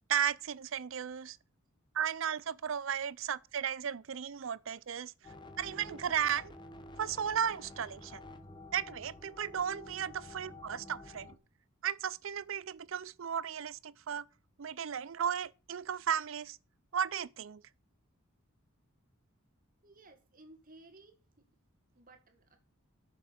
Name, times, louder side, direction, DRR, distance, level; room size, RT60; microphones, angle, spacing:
voice 1, 0.1-1.4 1.9-5.1 5.6-6.5 7.0-8.2 8.7-11.3 11.8-14.2 14.6-16.6 16.9-17.6, right 8 dB, 60° right, 0.5 m, -35 dB
sound 1, 5.2-11.4, left 2 dB, 20° left, 1.0 m, -50 dB
voice 2, 19.8-21.4 21.9-22.6, right 2 dB, 40° right, 1.9 m, -58 dB
10.5 x 6.7 x 6.8 m
head